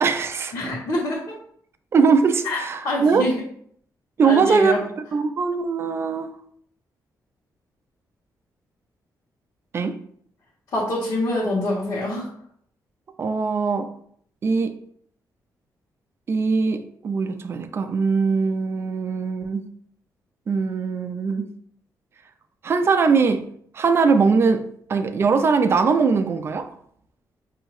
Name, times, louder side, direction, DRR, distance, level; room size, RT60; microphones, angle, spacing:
voice 1, 0.0-0.5 1.9-3.3 4.2-4.8 5.1-6.3 9.7-10.0 13.2-13.9 14.4-14.7 16.3-19.6 20.5-21.5 22.6-23.4 23.7-26.7, right 5 dB, 35° right, 0.4 m, -21 dB
voice 2, 0.5-1.2 2.4-2.6 2.8-3.4 4.2-4.8 10.7-12.3, left 1 dB, 55° left, 1.3 m, -25 dB
6.0 x 2.7 x 3.1 m
wide cardioid pair, 175°, 7 cm